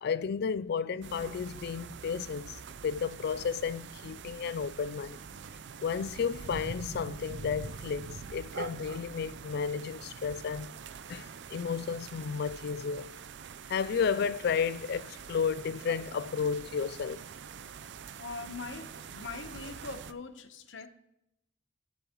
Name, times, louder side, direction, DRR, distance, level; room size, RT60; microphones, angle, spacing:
voice 1, 0.0-2.6 2.8-5.2 5.8-10.7 11.1-13.1 13.7-17.2, left 6 dB, 55° left, 0.3 m, -32 dB
sound 1, 1.0-20.1, right 6 dB, 60° right, 0.5 m, -45 dB
voice 2, 18.2-20.9, left 4 dB, 70° left, 1.0 m, -42 dB
15.0 x 6.9 x 3.0 m
head